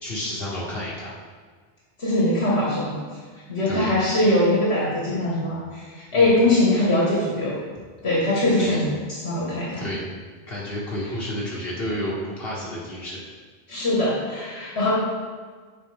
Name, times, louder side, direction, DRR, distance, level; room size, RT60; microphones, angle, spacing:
voice 1, 0.0-1.1 3.7-3.9 6.1-6.3 8.6-8.8 9.8-10.0 10.5-13.2 13.7-13.8, equal, 65° left, -6 dB, 1.7 m, -30 dB
voice 2, 2.0-3.0 3.5-7.6 8.0-8.9 9.2-9.9 13.7-14.9, left 1 dB, 80° left, -6 dB, 2.2 m, -22 dB
8.9 x 5.3 x 3.5 m, 1.5 s
omnidirectional pair, 1.1 m